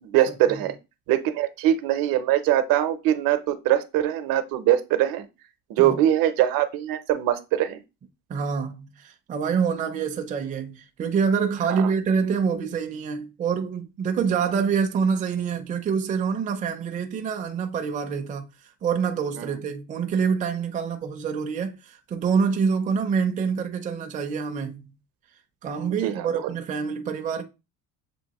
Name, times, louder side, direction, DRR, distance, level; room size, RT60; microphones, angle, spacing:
voice 1, 0.0-0.7 1.1-5.3 5.7-7.8 11.7-11.9 19.4-19.5 26.0-26.5, right 12 dB, 75° right, 0.7 m, -22 dB
voice 2, 8.3-18.5 18.8-24.9 25.6-27.4, right 6 dB, 25° right, 0.4 m, -26 dB
6.9 x 2.6 x 2.9 m
cardioid pair, 165°, 35 cm